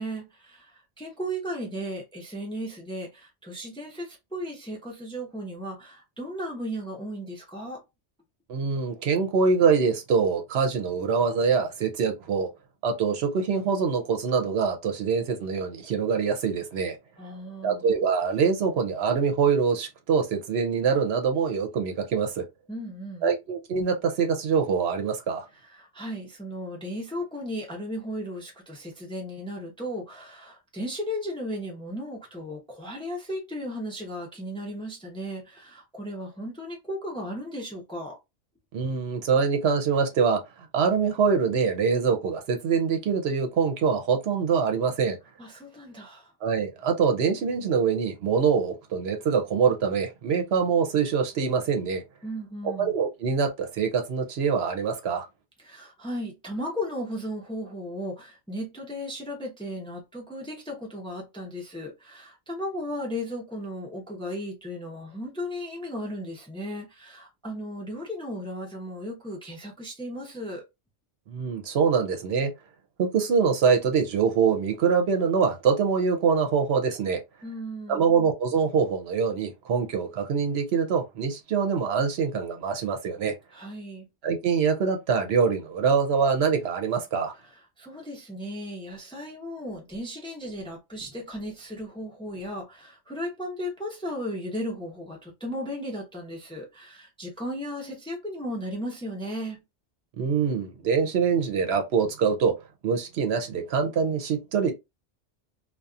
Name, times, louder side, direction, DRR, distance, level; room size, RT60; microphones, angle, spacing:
voice 1, 0.0-7.8 17.2-17.9 22.7-23.3 25.6-38.2 45.4-46.3 52.2-52.9 55.6-70.6 77.4-78.1 83.5-84.1 87.8-99.6, equal, 5° left, 0.6 m, -35 dB
voice 2, 8.5-12.5 12.8-17.0 17.6-22.4 23.2-25.5 38.7-45.2 46.4-52.0 52.8-55.3 71.3-72.5 73.0-77.2 77.9-83.3 84.2-87.3 100.2-102.5 102.8-104.7, right 6 dB, 70° right, 0.8 m, -24 dB
2.7 x 2.2 x 2.3 m
omnidirectional pair, 1.1 m